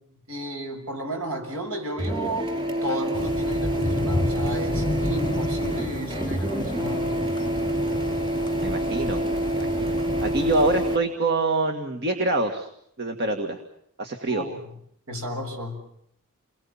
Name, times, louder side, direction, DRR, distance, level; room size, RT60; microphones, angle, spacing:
voice 1, 0.3-7.2 14.3-14.6 15.1-15.8, right 1 dB, 70° right, 4 dB, 6.9 m, -33 dB
Printer, 2.0-11.0, right 1 dB, 25° right, 4.9 m, -27 dB
sound 1, 3.1-11.0, left 1 dB, 20° left, 1.0 m, -31 dB
voice 2, 8.6-9.2 9.5-10.0 10.2-12.7 13.0-13.6 14.0-14.4, right 2 dB, 50° right, 5 dB, 1.9 m, -25 dB
29.5 x 21.5 x 7.3 m, 0.73 s
head